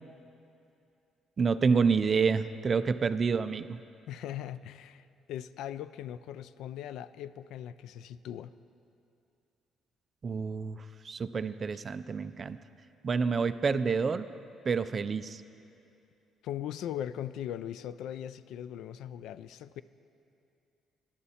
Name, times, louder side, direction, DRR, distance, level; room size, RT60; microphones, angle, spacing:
voice 1, 1.4-3.8 10.2-12.6 13.0-14.3 14.7-15.4, right 5 dB, 25° right, 12 dB, 0.3 m, -28 dB
voice 2, 4.1-8.5 16.4-19.8, left 10 dB, 70° left, 16 dB, 0.3 m, -39 dB
18.0 x 11.5 x 4.2 m, 2.6 s
cardioid pair, 175°, 0 cm